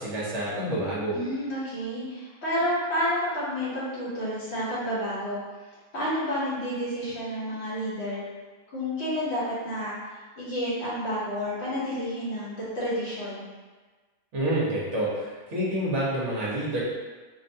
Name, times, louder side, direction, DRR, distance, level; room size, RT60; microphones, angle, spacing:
voice 1, 0.0-1.2 14.3-16.8, right 1 dB, 50° right, -7 dB, 1.1 m, -28 dB
voice 2, 1.1-5.4 5.9-8.2 8.7-9.9 10.4-13.5, equal, 45° left, -9 dB, 1.1 m, -30 dB
4.4 x 2.2 x 2.7 m, 1.4 s
omnidirectional pair, 1.8 m